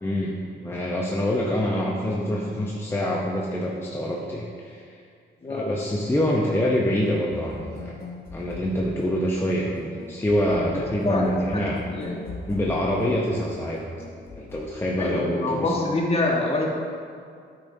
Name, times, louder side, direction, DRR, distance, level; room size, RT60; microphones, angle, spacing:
voice 1, 0.0-4.8 5.5-7.9 8.3-11.8 12.5-13.8 14.4-15.7, equal, 10° left, -3 dB, 0.6 m, -25 dB
voice 2, 5.4-5.8 10.7-11.6 11.9-12.2 15.0-16.7, left 2 dB, 30° left, -1 dB, 1.2 m, -26 dB
sound 1, 7.3-15.2, left 2 dB, 50° left, 1.2 m, -40 dB
8.7 x 5.3 x 2.7 m, 2.3 s
cardioid pair, 90°, 20 cm